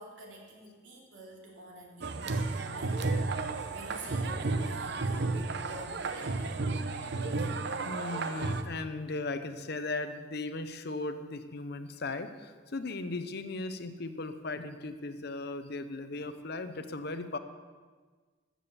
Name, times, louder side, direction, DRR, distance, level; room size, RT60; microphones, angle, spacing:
voice 1, 0.0-3.5 3.7-6.5, right 1 dB, 80° right, -1 dB, 2.8 m, -48 dB
sound 1, 2.0-8.6, right 3 dB, 60° right, 0.8 m, -32 dB
voice 2, 7.8-17.4, left 2 dB, 55° left, 10 dB, 0.8 m, -37 dB
13.5 x 7.6 x 7.0 m, 1.4 s
head